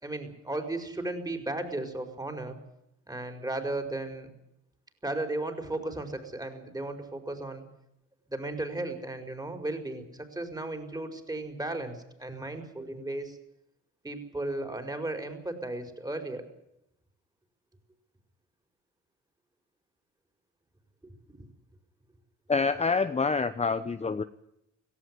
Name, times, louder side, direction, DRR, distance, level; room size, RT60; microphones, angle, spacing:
voice 1, 0.0-2.6 3.1-4.3 5.0-7.6 8.3-13.4 14.0-16.4 21.3-21.4, right 2 dB, 10° right, 6 dB, 5.1 m, -35 dB
voice 2, 22.5-24.2, left 4 dB, 20° left, 11 dB, 1.0 m, -27 dB
17.5 x 16.5 x 9.8 m, 0.82 s
cardioid pair, 90°, 30 cm